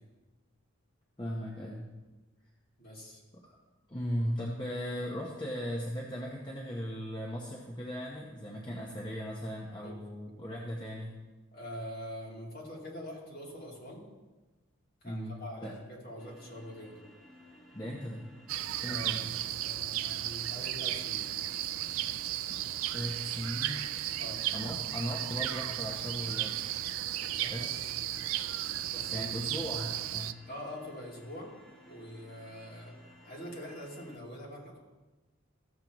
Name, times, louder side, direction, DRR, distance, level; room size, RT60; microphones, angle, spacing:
voice 1, 1.2-1.9 3.4-3.6 3.9-11.2 15.0-15.7 17.7-18.2 18.8-19.3 22.5-22.6 22.9-23.9 24.5-26.6 27.5-27.9 29.1-30.3, equal, 20° left, -3 dB, 0.8 m, -37 dB
voice 2, 2.8-3.2 9.8-9.9 11.5-14.0 15.0-17.0 18.8-21.3 24.2-24.4 27.2-27.7 28.9-29.3 30.5-31.5 31.9-32.9 33.2-34.8, equal, 40° left, -4 dB, 2.4 m, -44 dB
sound 1, 16.2-34.2, equal, ahead, 1.2 m, -57 dB
sound 2, 18.5-30.3, right 13 dB, 70° right, 0.3 m, -34 dB
14.5 x 7.4 x 3.0 m, 1.2 s
head